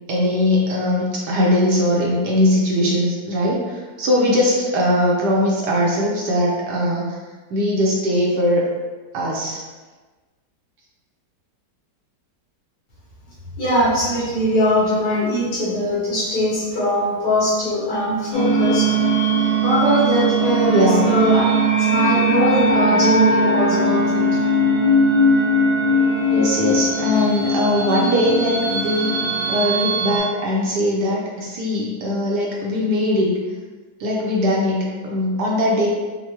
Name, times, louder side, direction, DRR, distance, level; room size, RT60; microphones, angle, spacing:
voice 1, 0.1-7.2 7.5-8.7 9.1-9.6 20.7-21.0 26.3-29.1 29.5-33.3 34.0-35.9, left 1 dB, 70° right, -4 dB, 1.2 m, -20 dB
voice 2, 13.6-18.9 19.6-21.5 21.8-24.2, equal, 65° left, -9 dB, 2.1 m, -20 dB
sound 1, 18.3-30.2, right 1 dB, 25° left, 0.8 m, -19 dB
5.4 x 2.2 x 3.0 m, 1.3 s
omnidirectional pair, 2.0 m